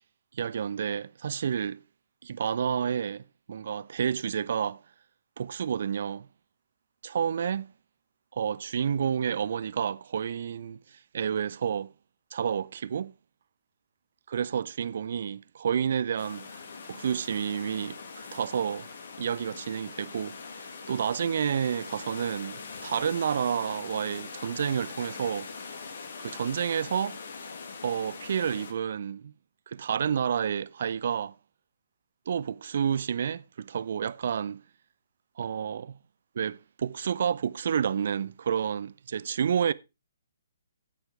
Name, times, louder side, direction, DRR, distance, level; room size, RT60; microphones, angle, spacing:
voice 1, 0.3-1.8 2.2-3.2 3.5-4.8 5.4-6.3 7.0-7.7 8.3-10.8 11.1-11.9 12.3-13.1 14.3-18.9 19.2-20.4 20.9-25.5 26.2-27.2 27.8-29.3 29.7-31.3 32.3-34.6 35.4-36.0 36.4-39.7, right 8 dB, 50° right, 0.5 m, -30 dB
sound 1, 16.2-28.7, left 4 dB, 55° left, 1.8 m, -42 dB
13.5 x 8.8 x 3.2 m
figure-of-eight pair, 130°, 0 cm